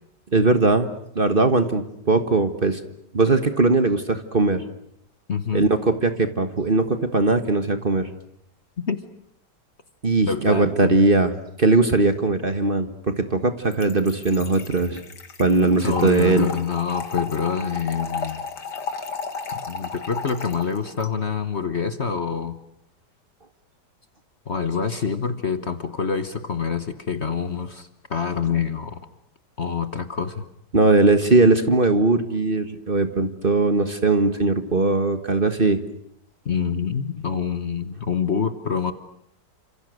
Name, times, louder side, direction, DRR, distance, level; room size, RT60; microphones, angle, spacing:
voice 1, 0.3-0.9 1.1-2.8 3.1-4.6 5.5-8.1 10.0-11.3 11.6-15.0 15.4-16.5 30.7-35.8, right 3 dB, 30° right, 9 dB, 1.6 m, -19 dB
voice 2, 5.3-5.7 8.8-9.0 10.3-11.0 15.8-18.4 19.5-22.6 24.5-29.0 29.6-30.4 36.4-38.9, left 6 dB, 40° left, 10 dB, 1.4 m, -26 dB
Trickle dribble / Fill (with liquid), 13.7-21.1, left 5 dB, 70° left, 2.6 m, -34 dB
29.5 x 26.5 x 6.5 m, 0.73 s
omnidirectional pair, 1.9 m